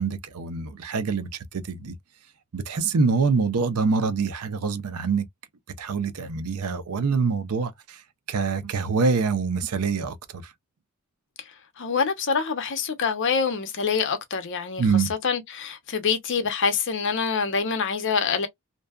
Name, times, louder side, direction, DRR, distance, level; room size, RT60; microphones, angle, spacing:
voice 1, 0.0-1.9 2.5-5.2 5.8-8.0 8.3-10.5 14.8-15.1, right 5 dB, 80° right, 0.5 m, -25 dB
voice 2, 11.4-18.5, left 5 dB, 55° left, 0.7 m, -26 dB
2.6 x 2.2 x 2.2 m
head